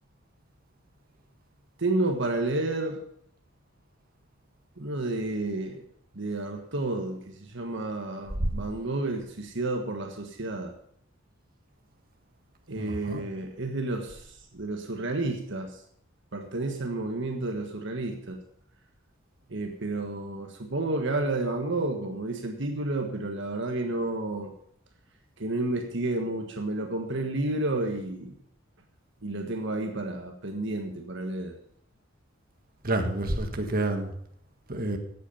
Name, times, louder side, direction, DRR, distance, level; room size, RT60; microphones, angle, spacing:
voice 1, 1.8-3.0 4.8-5.8 6.1-10.7 12.7-15.8 16.3-18.4 19.5-24.5 25.4-28.3 29.2-31.5, right 2 dB, 65° right, 4 dB, 1.5 m, -31 dB
voice 2, 12.8-13.2 32.8-34.1 34.7-35.0, right 2 dB, 45° right, 5 dB, 1.7 m, -29 dB
16.0 x 8.5 x 5.6 m, 0.69 s
head